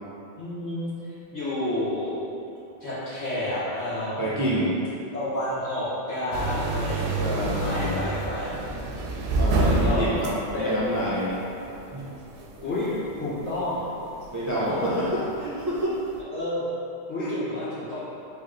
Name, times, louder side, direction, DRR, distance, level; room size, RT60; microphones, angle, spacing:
voice 1, 0.4-2.1 2.8-4.7 5.1-8.5 9.3-10.0 10.5-10.9 12.6-12.9 13.2-13.8 14.5-14.9 16.3-16.6 17.1-18.0, left 1 dB, 75° left, -13 dB, 1.9 m, -30 dB
voice 2, 4.2-4.7 6.9-8.0 9.4-11.3 11.9-12.1 14.3-16.0 17.2-17.4, equal, 30° right, -8 dB, 0.3 m, -28 dB
sound 1, 6.3-16.2, right 2 dB, 70° right, 0.8 m, -29 dB
4.0 x 3.2 x 3.8 m, 2.8 s
omnidirectional pair, 1.2 m